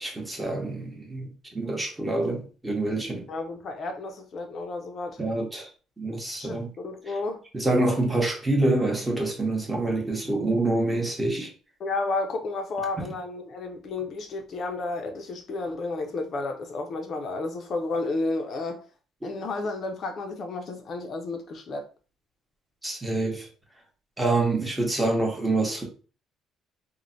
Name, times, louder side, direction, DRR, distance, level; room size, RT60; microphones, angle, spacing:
voice 1, 0.0-3.3 5.2-5.7 6.0-6.7 7.5-11.5 22.8-23.5 24.2-25.8, right 2 dB, 10° right, 0.7 m, -26 dB
voice 2, 3.3-5.2 6.4-7.4 11.8-18.8 19.2-21.8, left 3 dB, 45° left, 0.4 m, -32 dB
3.1 x 2.0 x 2.5 m
cardioid pair, 135°, 0 cm